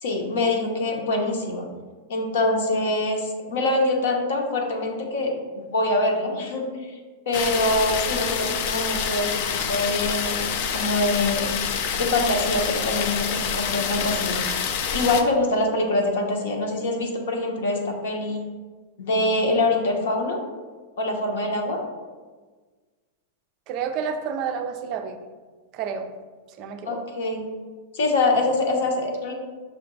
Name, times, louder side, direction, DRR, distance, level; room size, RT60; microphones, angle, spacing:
voice 1, 0.0-1.7 2.1-7.0 7.3-11.6 12.0-14.4 14.9-18.4 19.0-20.4 21.0-21.8 26.9-27.5 27.9-29.3, left 2 dB, 70° left, 2 dB, 0.9 m, -24 dB
sound 1, 7.3-15.2, left 7 dB, 50° left, 0.4 m, -27 dB
voice 2, 23.7-25.2 25.7-26.1 26.6-27.0, right 6 dB, 35° right, 6 dB, 0.3 m, -29 dB
5.8 x 2.2 x 3.9 m, 1.4 s
supercardioid pair, 160°, 0 cm